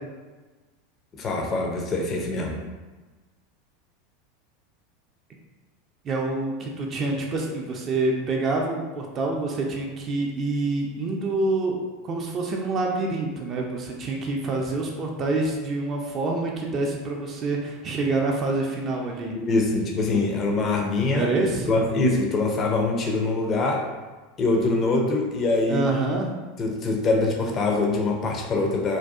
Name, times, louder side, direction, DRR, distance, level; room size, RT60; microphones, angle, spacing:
voice 1, 1.1-2.7 19.4-21.3 21.7-23.9 24.4-25.8 26.6-29.0, left 3 dB, 35° left, 1 dB, 0.4 m, -24 dB
voice 2, 6.0-11.8 12.0-19.3 21.1-21.7 25.7-26.3, right 2 dB, 35° right, 0 dB, 0.3 m, -26 dB
2.5 x 2.2 x 2.3 m, 1.2 s
figure-of-eight pair, 80°, 0 cm